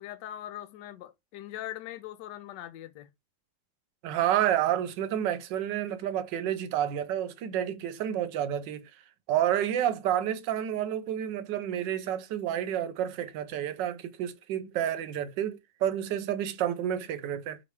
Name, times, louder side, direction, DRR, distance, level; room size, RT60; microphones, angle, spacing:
voice 1, 0.0-3.1, left 13 dB, 75° left, 1.2 m, -41 dB
voice 2, 4.0-8.9 9.3-17.6, right 10 dB, 75° right, 1.2 m, -29 dB
4.2 x 3.1 x 3.2 m
omnidirectional pair, 2.0 m